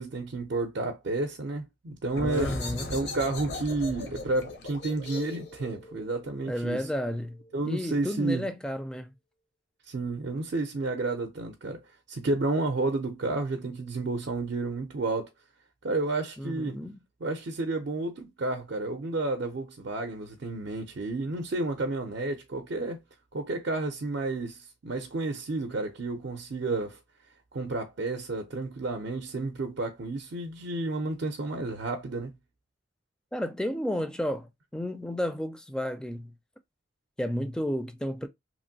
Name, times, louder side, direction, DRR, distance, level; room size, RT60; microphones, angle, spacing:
voice 1, 0.0-2.6 2.9-6.8 7.5-8.5 9.9-11.8 12.1-15.3 15.8-16.8 17.2-23.0 23.3-27.0 27.5-32.3, right 2 dB, 65° right, 0.5 m, -31 dB
sound 1, 2.1-7.5, left 2 dB, 65° left, 0.7 m, -38 dB
voice 2, 2.2-2.9 6.5-9.1 16.4-17.0 33.3-36.3 37.2-38.3, equal, 5° left, 0.3 m, -32 dB
3.0 x 2.5 x 2.6 m
head